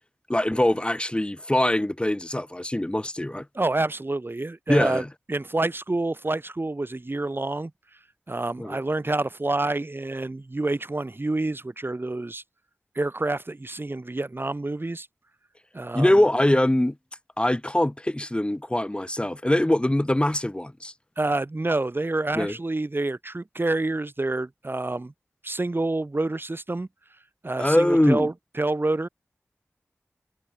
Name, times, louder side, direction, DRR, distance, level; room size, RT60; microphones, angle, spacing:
voice 1, 0.3-3.5 4.7-5.1 8.6-8.8 15.9-16.9 17.4-20.9 22.3-22.5 27.6-28.3, left 1 dB, 20° left, 4.5 m, -23 dB
voice 2, 3.5-5.0 5.3-7.7 8.3-12.4 13.0-15.1 15.7-16.1 21.2-25.1 25.4-26.9 27.4-29.1, right 2 dB, 45° right, 5.4 m, -28 dB
wide cardioid pair, 50°, 5 cm